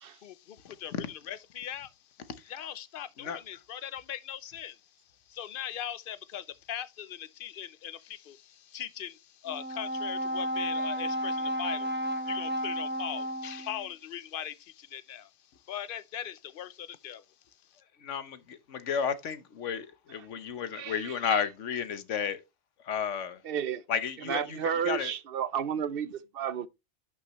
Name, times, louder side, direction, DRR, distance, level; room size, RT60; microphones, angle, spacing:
voice 1, 1.3-1.9 2.5-4.7 5.3-8.4 8.7-9.2 9.4-11.9 12.3-14.5 14.9-15.3 15.7-17.2, left 10 dB, 55° left, 0.8 m, -39 dB
Brass instrument, 9.5-13.9, equal, 10° right, 0.6 m, -32 dB
voice 2, 18.0-22.4 22.8-23.4 23.9-25.1, left 7 dB, 75° left, 1.2 m, -33 dB
voice 3, 20.8-21.4 23.4-23.8 24.2-26.7, right 8 dB, 55° right, 0.8 m, -32 dB
11.5 x 6.1 x 3.0 m
omnidirectional pair, 1.3 m